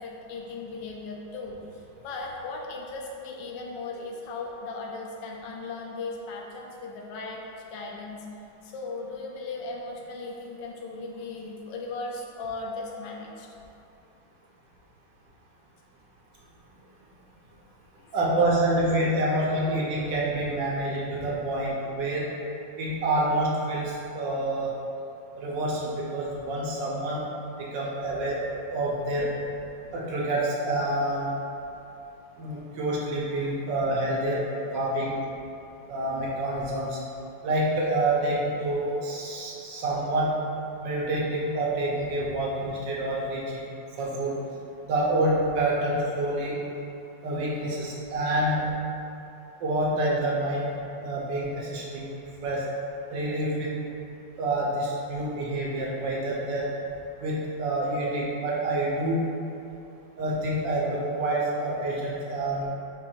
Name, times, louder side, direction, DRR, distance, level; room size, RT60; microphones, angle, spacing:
voice 1, 0.0-7.4 7.7-8.3 8.6-13.5 18.0-18.3 19.3-19.4 33.6-33.8 34.6-34.7, left 3 dB, 75° left, 0 dB, 1.2 m, -37 dB
voice 2, 18.1-22.2 22.8-24.7 25.4-27.2 27.7-28.4 28.7-29.3 29.9-31.3 32.4-34.4 34.7-35.2 35.9-37.0 37.4-40.3 40.8-43.7 44.0-44.4 44.9-46.5 47.2-48.6 49.6-52.1 52.4-52.6 53.1-53.7 54.4-56.7 57.2-59.2 60.2-62.7, right 1 dB, 75° right, -4 dB, 1.4 m, -27 dB
4.6 x 2.6 x 4.3 m, 2.7 s
omnidirectional pair, 2.1 m